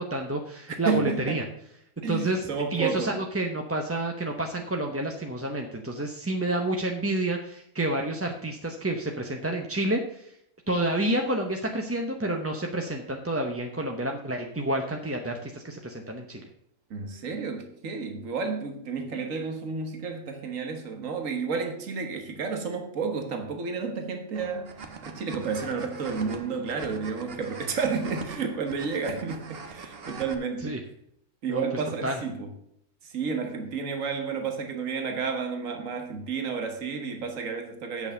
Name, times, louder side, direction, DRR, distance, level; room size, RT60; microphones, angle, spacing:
voice 1, 0.0-1.4 2.1-10.3 10.7-16.4 30.6-30.8 31.5-31.6 32.0-32.2, right 1 dB, 15° right, 2 dB, 0.7 m, -29 dB
voice 2, 0.8-1.4 2.0-3.2 16.9-30.8 31.4-32.5 33.0-38.1, right 5 dB, 85° right, 5 dB, 1.6 m, -31 dB
sound 1, 24.3-30.3, right 5 dB, 50° right, 1.2 m, -42 dB
8.4 x 6.8 x 6.6 m, 0.73 s
omnidirectional pair, 1.3 m